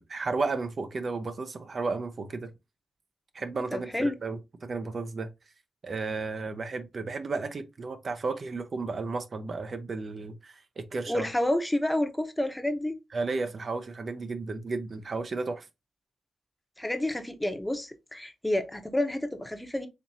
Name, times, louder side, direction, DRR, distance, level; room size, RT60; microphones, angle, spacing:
voice 1, 0.1-2.5 3.3-5.3 5.8-11.2 13.1-15.7, right 3 dB, 55° right, 0.6 m, -33 dB
voice 2, 3.7-4.2 11.1-13.0 16.8-19.9, left 1 dB, 10° left, 0.8 m, -29 dB
4.3 x 2.9 x 2.7 m
cardioid pair, 55°, 0 cm